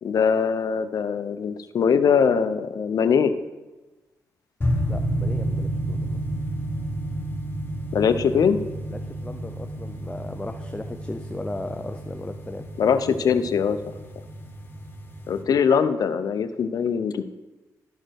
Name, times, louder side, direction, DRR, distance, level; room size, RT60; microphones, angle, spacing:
voice 1, 0.0-3.3 7.9-8.6 12.8-13.8 15.3-17.2, left 6 dB, 70° left, 11 dB, 0.6 m, -22 dB
sound 1, 4.6-15.4, right 1 dB, 35° left, 1.9 m, -31 dB
voice 2, 4.9-6.2 8.9-12.7, left 2 dB, 15° left, 5 dB, 0.6 m, -36 dB
12.5 x 4.9 x 4.5 m, 1.1 s
cardioid pair, 70°, 7 cm